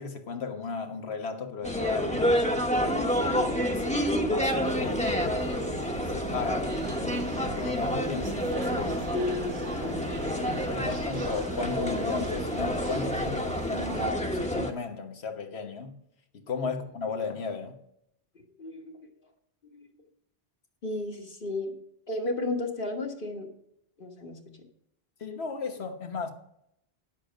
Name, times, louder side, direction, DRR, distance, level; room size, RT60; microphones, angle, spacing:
voice 1, 0.0-2.2 2.8-5.2 6.0-6.7 7.0-9.0 10.7-16.0 16.3-17.8 25.2-26.3, left 5 dB, 85° left, 1.5 m, -35 dB
sound 1, 1.6-14.7, equal, 5° left, 1.0 m, -29 dB
sound 2, 4.6-14.1, right 4 dB, 75° right, 1.3 m, -40 dB
voice 2, 9.1-10.8 16.6-16.7 18.6-19.0 19.6-19.9 20.8-21.7 22.1-23.5 24.0-24.6, left 2 dB, 55° left, 1.6 m, -34 dB
10.5 x 7.6 x 5.1 m
omnidirectional pair, 1.0 m